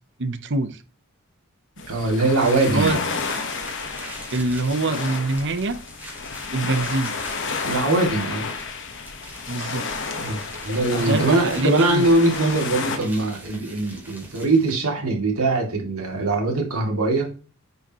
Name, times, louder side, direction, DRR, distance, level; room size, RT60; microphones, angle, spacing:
voice 1, 0.2-0.8 2.7-3.0 4.3-5.8 6.5-7.2 9.5-9.9 11.0-12.0, right 2 dB, 60° right, 11 dB, 0.9 m, -24 dB
sound 1, 1.8-13.0, left 4 dB, 60° left, 1.3 m, -31 dB
voice 2, 1.9-3.0 7.6-8.5 10.1-17.3, right 2 dB, 85° right, 1 dB, 2.7 m, -22 dB
sound 2, 2.3-14.9, right 1 dB, 10° right, 2.4 m, -42 dB
10.0 x 5.4 x 3.0 m, 0.37 s
head